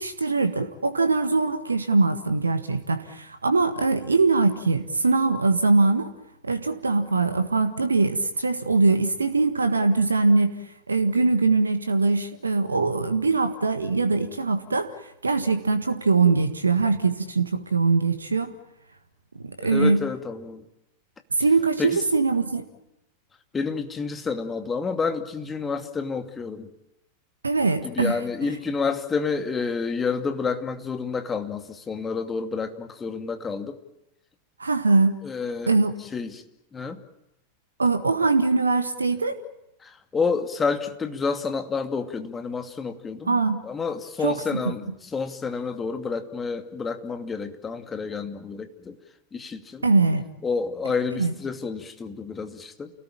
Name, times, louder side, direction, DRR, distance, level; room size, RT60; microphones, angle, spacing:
voice 1, 0.0-6.1 6.4-10.6 10.9-18.6 19.4-20.0 21.3-22.7 27.4-28.2 34.6-35.2 35.7-35.9 37.8-39.4 43.2-43.6 44.2-44.7 49.8-50.3 51.2-51.3, right 3 dB, 75° right, 9 dB, 1.6 m, -22 dB
voice 2, 19.6-20.6 21.8-22.0 23.5-26.7 27.9-33.8 35.2-35.8 36.1-36.4 36.7-37.0 39.8-49.0 49.3-49.8 50.4-52.9, left 5 dB, 15° left, 7 dB, 2.5 m, -29 dB
30.0 x 18.5 x 8.9 m, 0.88 s
figure-of-eight pair, 90°, 0 cm